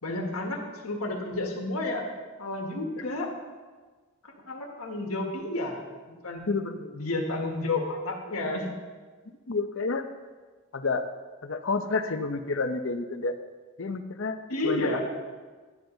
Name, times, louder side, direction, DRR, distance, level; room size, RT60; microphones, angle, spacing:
voice 1, 0.0-2.0 2.4-3.3 4.3-6.5 6.9-8.7 14.5-15.0, left 2 dB, 80° left, 1 dB, 1.8 m, -31 dB
voice 2, 6.5-6.9 9.5-10.1 10.7-11.1 11.4-13.4 13.8-14.4 14.7-14.9, left 3 dB, 60° left, 8 dB, 0.8 m, -29 dB
12.0 x 10.0 x 4.0 m, 1.4 s
head